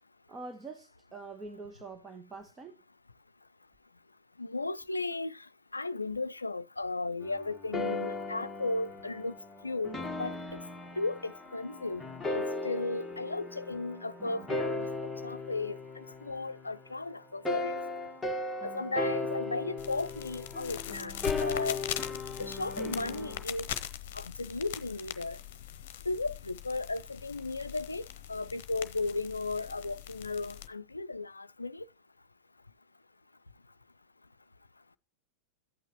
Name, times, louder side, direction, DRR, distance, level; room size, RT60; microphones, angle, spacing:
voice 1, 0.3-2.8, right 3 dB, 20° right, 1.3 m, -45 dB
voice 2, 4.4-5.4 5.7-9.3 9.6-9.9 10.2-10.6 11.0-12.0 12.3-14.9 15.2-17.8 18.6-21.8 22.4-23.7 24.1-25.4 26.1-31.9, left 3 dB, 80° left, 0.5 m, -35 dB
sound 1, 7.2-16.9 17.4-23.4, left 2 dB, 5° left, 1.7 m, -37 dB
sound 2, 19.8-30.7, left 11 dB, 50° left, 0.9 m, -41 dB
14.0 x 9.0 x 3.1 m
figure-of-eight pair, 90°, 0 cm